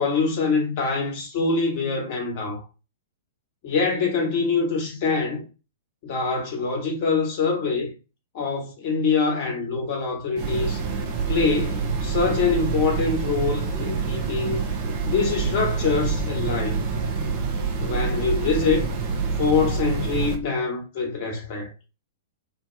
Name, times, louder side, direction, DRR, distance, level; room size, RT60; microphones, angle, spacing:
voice 1, 0.0-2.6 3.6-5.4 6.0-7.9 8.3-10.8 11.3-14.6 15.1-16.9 17.8-18.9 19.4-21.7, left 4 dB, 45° left, 1.2 m, -24 dB
sound 1, 10.4-20.4, right 5 dB, 40° right, 0.6 m, -26 dB
2.7 x 2.3 x 3.0 m
figure-of-eight pair, 105°, 0 cm